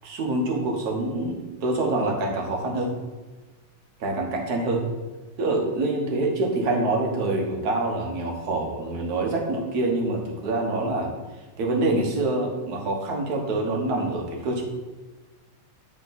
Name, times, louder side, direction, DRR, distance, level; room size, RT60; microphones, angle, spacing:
voice 1, 0.0-2.9 4.0-4.8 5.4-11.1 11.6-14.6, right 2 dB, 55° right, 2 dB, 1.5 m, -26 dB
9.7 x 3.6 x 3.9 m, 1.2 s
omnidirectional pair, 2.2 m